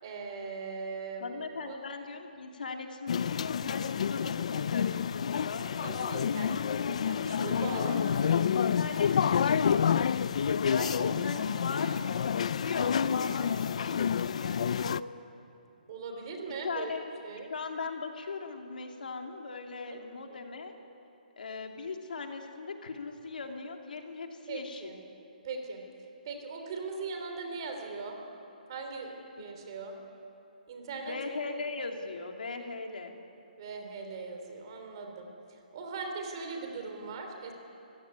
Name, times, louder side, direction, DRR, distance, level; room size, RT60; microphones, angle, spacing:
voice 1, 0.0-1.3 1.6-1.8 5.8-8.5 10.8-11.4 15.9-16.9 17.2-17.5 19.9-20.0 24.5-25.0 25.4-25.8 26.2-28.2 28.7-30.0 30.7-31.2 33.6-37.5, right 4 dB, 30° right, 4 dB, 3.3 m, -40 dB
voice 2, 1.2-5.7 8.5-14.9 16.6-17.0 17.5-20.7 21.4-24.9 31.0-33.2, left 4 dB, 70° left, 3 dB, 2.9 m, -39 dB
sound 1, 3.1-15.0, left 7 dB, 45° left, 0.5 m, -29 dB
26.0 x 16.0 x 9.6 m, 2.8 s
hypercardioid pair, 175°, 5 cm